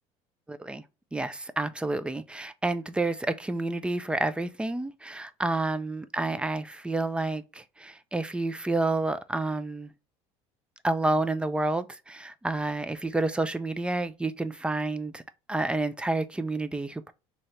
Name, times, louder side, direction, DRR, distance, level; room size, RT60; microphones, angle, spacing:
voice 1, 0.5-0.8 1.1-9.9 10.8-15.2 15.5-17.1, right 2 dB, 5° right, 0.3 m, -29 dB
4.2 x 2.8 x 3.0 m
supercardioid pair, 110°, 14 cm